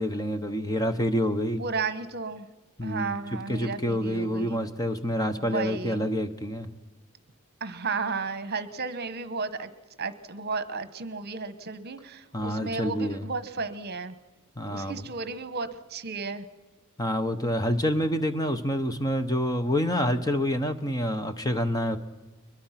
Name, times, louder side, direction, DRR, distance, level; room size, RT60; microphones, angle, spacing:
voice 1, 0.0-1.6 2.8-3.1 3.5-6.7 12.3-13.3 14.6-15.0 17.0-22.0, equal, 15° left, 8 dB, 1.1 m, -27 dB
voice 2, 1.6-2.5 2.8-4.6 5.4-6.0 7.6-9.7 10.0-14.1 14.7-16.5, right 4 dB, 50° right, 13 dB, 1.2 m, -33 dB
22.5 x 21.5 x 5.9 m, 1.2 s
head